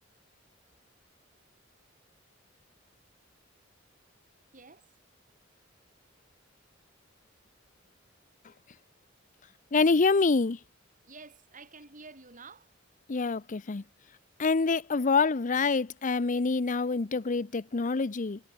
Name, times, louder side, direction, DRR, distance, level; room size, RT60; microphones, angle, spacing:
voice 1, 4.5-4.9 11.0-12.7, right 4 dB, 40° right, 5.7 m, -50 dB
voice 2, 9.7-10.6 13.1-13.8 14.4-18.4, left 4 dB, 40° left, 0.6 m, -26 dB
head